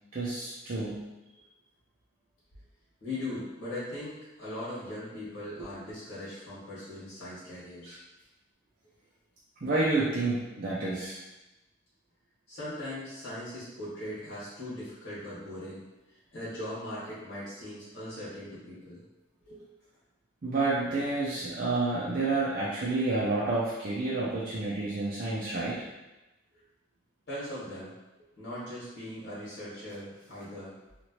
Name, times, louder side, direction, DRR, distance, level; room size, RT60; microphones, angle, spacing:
voice 1, 0.1-1.0 7.9-8.0 9.6-11.2 20.4-25.9, right 2 dB, 45° right, -8 dB, 0.5 m, -29 dB
voice 2, 3.0-8.0 12.5-15.8 16.3-19.0 19.5-19.6 27.3-27.9 28.4-30.7, left 1 dB, 55° left, -10 dB, 1.3 m, -39 dB
3.0 x 2.5 x 2.9 m, 1.0 s
head